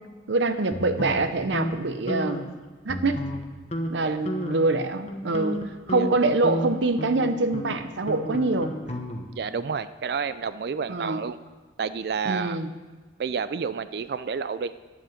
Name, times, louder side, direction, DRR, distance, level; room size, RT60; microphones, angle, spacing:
voice 1, 0.3-2.5 2.8-3.2 3.9-5.6 5.9-8.7 10.9-11.2 12.2-12.7, right 2 dB, 80° right, 10 dB, 0.8 m, -25 dB
sound 1, 0.7-1.7 2.1-2.5 2.9-3.4 3.7-3.9 4.3-4.7 5.1-9.4, equal, 35° left, 1.0 m, -32 dB
voice 2, 9.3-11.4 11.8-12.6 13.2-14.8, right 5 dB, 55° right, 14 dB, 0.3 m, -30 dB
9.9 x 7.9 x 7.3 m, 1.3 s
head